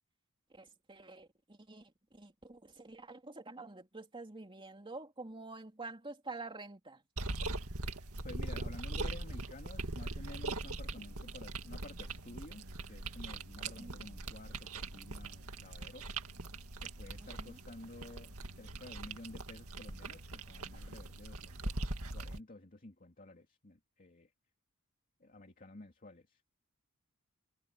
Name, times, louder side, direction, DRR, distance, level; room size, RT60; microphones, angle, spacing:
voice 1, 0.5-7.0 13.6-14.0 17.2-17.6, right 3 dB, 25° right, 2.9 m, -48 dB
sound 1, 7.2-22.4, right 2 dB, 70° right, 2.2 m, -41 dB
voice 2, 8.2-16.1 16.8-21.8 22.1-24.3 25.2-26.4, left 2 dB, 40° left, 2.6 m, -52 dB
head